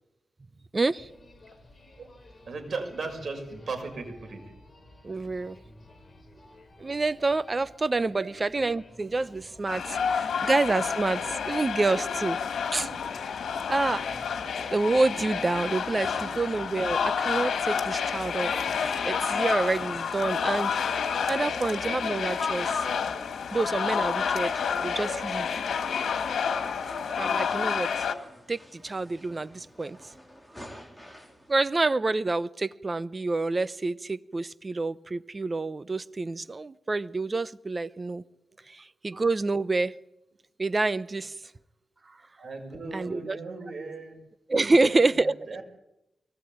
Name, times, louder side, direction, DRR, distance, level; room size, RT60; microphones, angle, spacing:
voice 1, 0.7-1.1 5.0-5.6 6.8-12.4 12.7-12.8 13.7-14.1 14.7-20.8 21.3-22.9 23.5-25.6 27.2-28.1 28.5-30.0 31.5-38.2 38.7-40.0 40.6-41.4 42.1-42.2 42.9-43.4 44.5-45.3, right 3 dB, 30° right, 16 dB, 0.8 m, -28 dB
sound 1, 1.0-14.4, left 1 dB, 25° left, 7.0 m, -54 dB
voice 2, 2.5-4.4 8.0-8.3 12.7-12.9 18.5-18.6 42.4-44.2 44.5-45.6, right 3 dB, 60° right, 4 dB, 6.1 m, -37 dB
sound 2, 9.7-28.1, left 6 dB, 85° left, 2.2 m, -29 dB
sound 3, 13.0-31.6, equal, ahead, 3.6 m, -50 dB
23.0 x 19.0 x 8.9 m, 0.89 s
wide cardioid pair, 95°, 0 cm